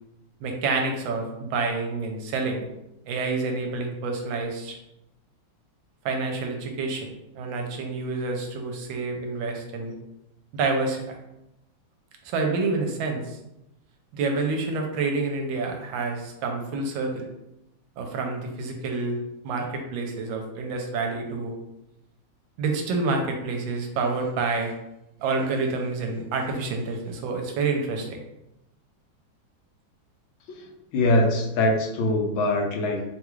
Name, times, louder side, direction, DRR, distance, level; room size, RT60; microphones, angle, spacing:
voice 1, 0.4-2.7 3.1-4.8 6.0-7.1 7.3-9.9 10.5-11.0 12.2-13.4 14.1-17.3 18.0-19.2 19.4-21.5 22.6-24.8 25.2-28.2, right 3 dB, 80° right, 2 dB, 1.3 m, -28 dB
voice 2, 30.5-33.0, left 1 dB, 85° left, 1 dB, 1.4 m, -23 dB
3.5 x 2.3 x 3.0 m, 0.88 s
omnidirectional pair, 2.2 m